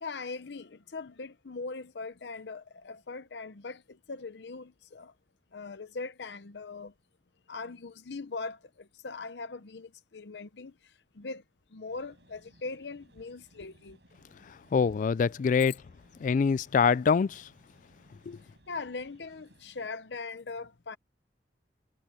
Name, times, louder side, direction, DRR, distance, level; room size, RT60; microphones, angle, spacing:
voice 1, 0.0-5.1 5.5-6.9 7.5-10.7 11.2-11.4 11.7-14.0 15.7-15.8 18.7-21.0, left 4 dB, 75° left, 0.7 m, -40 dB
sound 1, 11.9-19.9, right 1 dB, 75° right, 7.5 m, -62 dB
voice 2, 14.7-15.8 16.2-17.4 18.3-18.4, left 5 dB, 45° left, 0.3 m, -24 dB
head